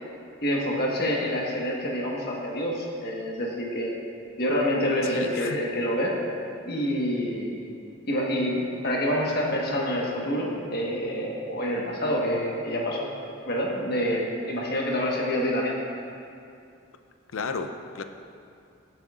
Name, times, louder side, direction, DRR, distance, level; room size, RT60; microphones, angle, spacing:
voice 1, 0.4-3.9 4.4-6.2 6.7-7.5 8.0-13.1 13.5-15.8, equal, 50° left, -2 dB, 1.4 m, -27 dB
voice 2, 5.1-5.6 17.3-18.0, left 3 dB, 70° left, 7 dB, 0.5 m, -33 dB
17.0 x 7.6 x 2.5 m, 2.5 s
head